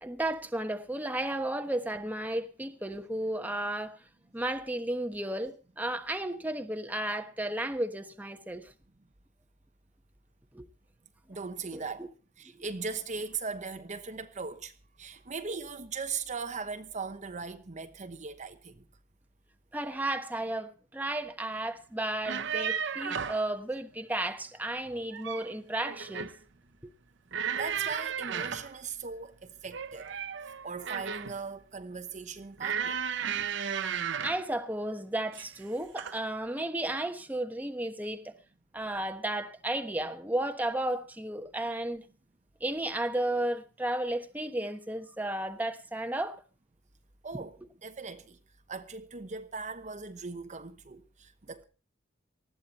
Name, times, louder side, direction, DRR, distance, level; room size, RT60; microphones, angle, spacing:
voice 1, 0.0-4.0 4.3-8.7 10.5-10.7 11.7-11.8 19.7-26.3 34.2-38.3 38.7-42.0 42.6-46.4 47.3-47.4, right 1 dB, 10° right, 1.2 m, -33 dB
voice 2, 11.3-12.1 12.4-18.8 27.5-30.1 30.6-33.0 47.2-48.4 48.7-51.6, right 4 dB, 40° right, 1.0 m, -39 dB
sound 1, 22.1-23.5 24.9-25.5 25.9-26.4 27.3-28.7 29.7-31.4 32.6-34.5 35.3-35.6 36.0-36.2, right 7 dB, 65° right, 0.8 m, -34 dB
19.5 x 13.5 x 4.2 m
head